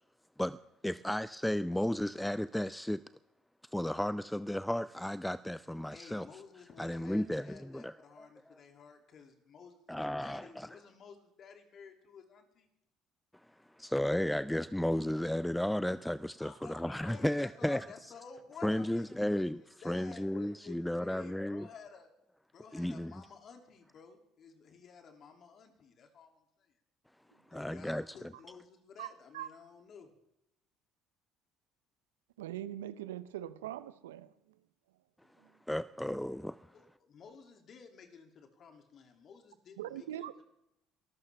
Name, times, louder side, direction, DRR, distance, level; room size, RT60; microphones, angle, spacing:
voice 1, 0.4-3.0 3.7-6.3 6.8-8.3 9.9-10.7 13.5-17.9 18.6-19.6 19.9-21.7 22.7-23.1 27.5-28.2 35.7-36.7, left 1 dB, 5° left, 0.4 m, -34 dB
voice 2, 5.9-12.7 16.4-22.1 22.5-26.8 27.3-30.1 36.7-40.4, left 6 dB, 50° left, 2.6 m, -53 dB
voice 3, 32.4-34.3 35.4-35.5 39.8-40.4, right 12 dB, 85° right, 0.6 m, -41 dB
22.5 x 14.5 x 3.4 m
hypercardioid pair, 60°, 0 cm